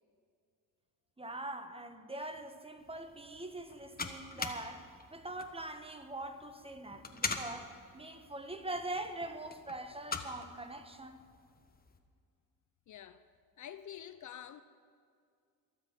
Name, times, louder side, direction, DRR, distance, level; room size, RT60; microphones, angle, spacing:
voice 1, 1.2-11.2, right 2 dB, 15° right, 1.1 m, -43 dB
sound 1, 2.8-12.0, left 4 dB, 25° left, 1.2 m, -44 dB
voice 2, 12.9-13.2 13.6-14.6, left 10 dB, 50° left, 0.6 m, -47 dB
22.5 x 7.7 x 5.2 m
cardioid pair, 85°, 37 cm